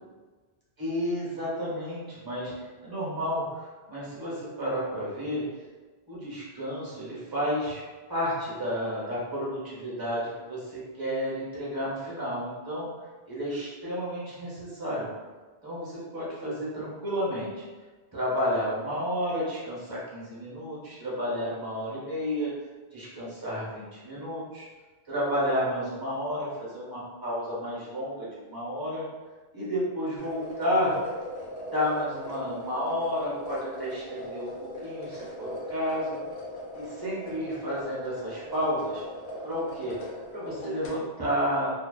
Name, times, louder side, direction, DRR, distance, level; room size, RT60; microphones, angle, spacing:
voice 1, 0.8-5.4 6.1-7.8 8.1-12.9 13.3-15.1 15.6-17.5 18.1-22.5 22.9-24.6 25.1-29.0 29.5-30.9 31.7-36.2 36.7-39.0 39.4-41.7, equal, 25° right, -8 dB, 0.8 m, -31 dB
sound 1, 30.2-40.9, left 1 dB, 60° left, 0.7 m, -40 dB
2.6 x 2.2 x 2.3 m, 1.3 s
omnidirectional pair, 1.1 m